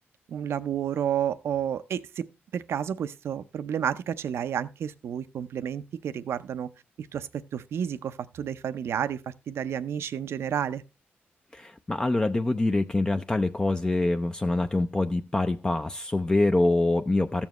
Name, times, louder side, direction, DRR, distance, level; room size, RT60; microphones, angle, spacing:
voice 1, 0.3-2.3 2.5-6.7 7.0-10.8, right 9 dB, 80° right, 0.6 m, -31 dB
voice 2, 11.5-17.5, left 2 dB, 20° left, 0.4 m, -25 dB
13.5 x 7.1 x 3.0 m
cardioid pair, 105°, 4 cm